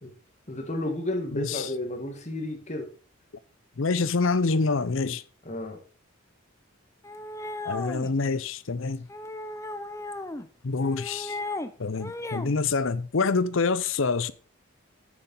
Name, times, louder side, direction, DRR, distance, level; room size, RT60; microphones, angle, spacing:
voice 1, 0.5-2.9 5.4-5.8, left 1 dB, 35° left, 2.0 m, -32 dB
voice 2, 1.3-1.7 3.8-5.2 7.6-9.1 10.6-11.4 11.8-14.3, left 4 dB, 65° left, 0.7 m, -26 dB
sound 1, 7.0-8.1 9.1-10.5 10.8-11.7 12.0-12.5, left 2 dB, 15° left, 0.6 m, -35 dB
9.6 x 6.7 x 5.5 m
head